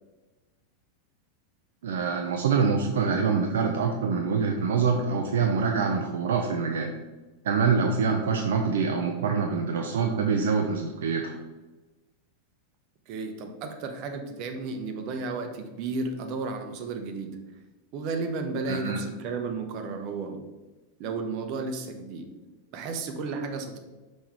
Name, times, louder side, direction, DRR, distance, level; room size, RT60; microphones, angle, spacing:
voice 1, 1.8-6.9 7.4-11.4 18.7-19.0, right 5 dB, 60° right, 3 dB, 0.5 m, -25 dB
voice 2, 13.1-17.4 17.9-20.5 21.0-22.3 22.7-23.8, right 4 dB, 40° right, 5 dB, 0.8 m, -33 dB
5.7 x 5.2 x 3.2 m, 1.2 s
figure-of-eight pair, 90°, 0 cm